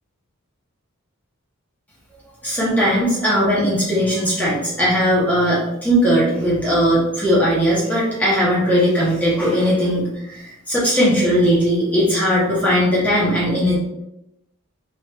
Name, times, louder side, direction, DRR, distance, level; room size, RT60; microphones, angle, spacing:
voice 1, 2.4-13.8, equal, 5° left, -8 dB, 0.8 m, -18 dB
3.2 x 2.4 x 2.8 m, 0.87 s
head